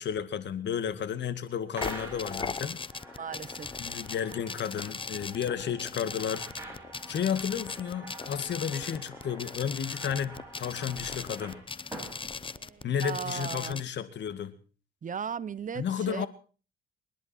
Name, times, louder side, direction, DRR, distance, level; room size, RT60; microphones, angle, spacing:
voice 1, 0.0-2.8 3.8-6.5 7.1-11.6 12.8-14.5 15.8-16.3, left 8 dB, 65° left, 2.1 m, -32 dB
sound 1, 1.8-13.8, left 5 dB, 25° left, 0.8 m, -39 dB
sound 2, 1.8-13.0, right 2 dB, 15° right, 7.8 m, -47 dB
voice 2, 3.2-3.7 12.5-13.8 15.0-16.3, right 7 dB, 40° right, 1.0 m, -37 dB
29.0 x 11.0 x 4.4 m
cardioid pair, 90°, 20 cm